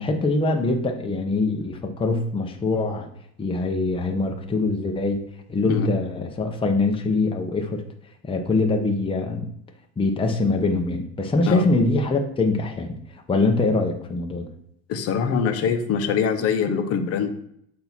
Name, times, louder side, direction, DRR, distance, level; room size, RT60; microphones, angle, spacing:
voice 1, 0.0-3.1 3.4-5.2 5.5-7.8 8.2-9.5 10.0-12.9 13.3-14.5, left 3 dB, 15° left, 3 dB, 0.9 m, -23 dB
voice 2, 14.9-17.3, left 6 dB, 50° left, 6 dB, 0.9 m, -23 dB
7.8 x 2.8 x 4.4 m, 0.70 s
supercardioid pair, 90°, 30 cm